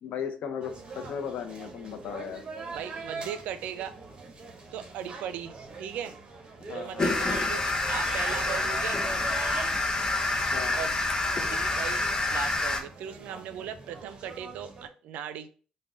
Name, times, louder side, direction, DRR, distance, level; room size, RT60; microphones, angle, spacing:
voice 1, 0.0-2.4 6.7-7.1 10.5-10.8, left 7 dB, 70° left, 6 dB, 0.6 m, -36 dB
sound 1, 0.6-14.9, right 4 dB, 40° right, 0.8 m, -42 dB
voice 2, 2.7-4.0 4.7-6.2 6.7-9.0 10.7-11.0 11.4-12.0 12.3-15.5, right 9 dB, 80° right, 11 dB, 0.4 m, -38 dB
sound 2, 7.0-12.8, left 2 dB, 30° left, 0.7 m, -27 dB
3.6 x 2.2 x 3.7 m, 0.39 s
supercardioid pair, 70°, 2 cm